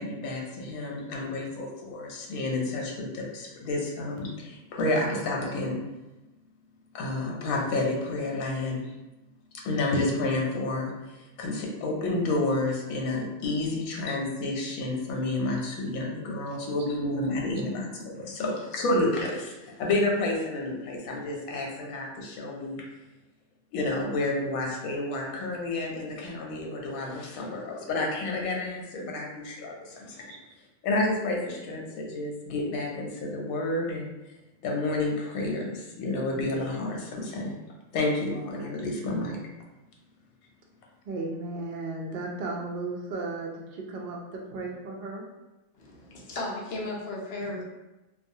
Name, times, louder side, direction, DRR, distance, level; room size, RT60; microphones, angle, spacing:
voice 1, 0.0-5.8 6.9-8.9 9.6-22.8 23.7-30.3 30.8-34.1 34.6-37.6 37.9-39.4, left 2 dB, 85° left, -1 dB, 1.0 m, -30 dB
voice 2, 41.1-45.3 47.4-47.6, right 3 dB, 85° right, -1 dB, 0.4 m, -35 dB
voice 3, 45.7-47.6, left 2 dB, 65° left, -2 dB, 0.6 m, -35 dB
2.3 x 2.3 x 2.6 m, 1.0 s
omnidirectional pair, 1.4 m